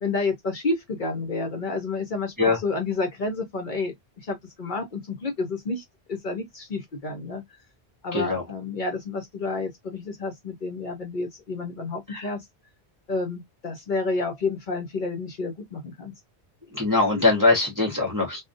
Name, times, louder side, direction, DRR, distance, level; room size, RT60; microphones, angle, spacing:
voice 1, 0.0-5.8 6.1-7.4 8.0-12.4 13.1-16.1, left 3 dB, 55° left, 0.7 m, -30 dB
voice 2, 8.1-8.4 12.1-12.3 16.7-18.4, left 3 dB, 20° right, 0.7 m, -22 dB
2.3 x 2.1 x 2.5 m
omnidirectional pair, 1.1 m